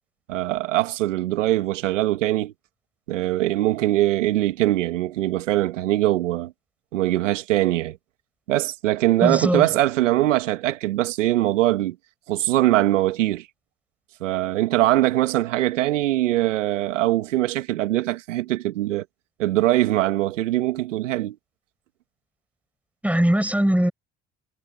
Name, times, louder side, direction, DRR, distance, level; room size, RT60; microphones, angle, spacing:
voice 1, 0.3-2.5 3.1-6.5 6.9-8.0 8.5-12.0 12.3-13.5 14.2-19.1 19.4-21.4, right 15 dB, 85° right, 1.9 m, -22 dB
voice 2, 9.2-9.6 23.0-23.9, right 1 dB, 5° right, 5.6 m, -20 dB
hypercardioid pair, 60°, 36 cm